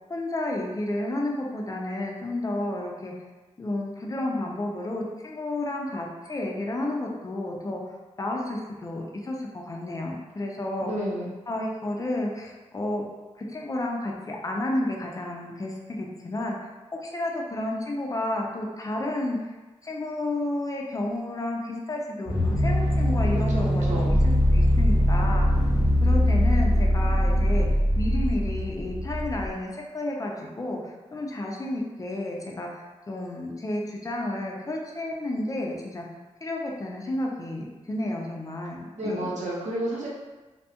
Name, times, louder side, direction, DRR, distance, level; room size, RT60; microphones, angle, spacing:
voice 1, 0.1-3.1 3.6-7.8 8.2-10.9 11.5-13.0 13.4-19.5 19.8-25.5 26.0-27.7 28.0-36.0 36.4-39.3, left 1 dB, 30° left, -1 dB, 0.4 m, -31 dB
voice 2, 10.9-11.3 23.5-24.1 39.0-40.1, equal, 85° right, -4 dB, 0.7 m, -31 dB
sound 1, 22.3-29.5, equal, 10° right, 0.6 m, -22 dB
2.5 x 2.2 x 2.8 m, 1.2 s
wide cardioid pair, 105°, 12 cm